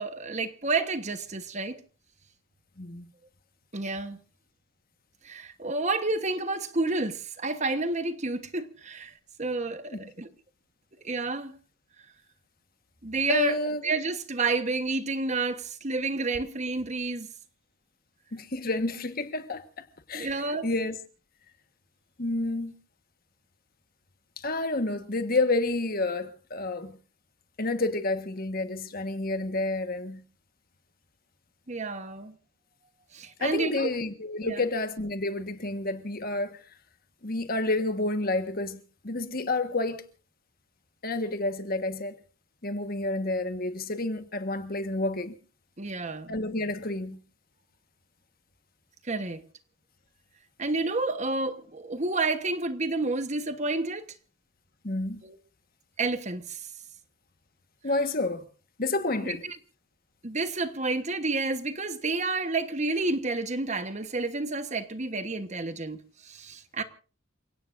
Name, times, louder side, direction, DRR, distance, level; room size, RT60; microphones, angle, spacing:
voice 1, 0.0-1.8 3.7-4.2 5.2-9.1 9.4-10.3 11.0-11.6 13.0-17.3 20.1-20.7 31.7-32.3 33.1-33.9 34.4-34.6 45.8-46.3 49.0-49.4 50.6-54.1 55.2-55.4 56.0-56.7 59.2-59.6 60.2-66.8, right 3 dB, 35° right, 1.2 m, -30 dB
voice 2, 2.8-3.1 9.9-10.1 13.3-13.8 18.3-19.6 20.1-21.0 22.2-22.7 24.4-26.9 27.6-30.2 33.4-36.6 37.2-40.0 41.0-42.1 42.6-45.3 46.3-47.2 54.8-55.2 57.8-58.4 58.8-59.4, left 2 dB, 45° left, 1.5 m, -29 dB
29.0 x 17.5 x 2.6 m
head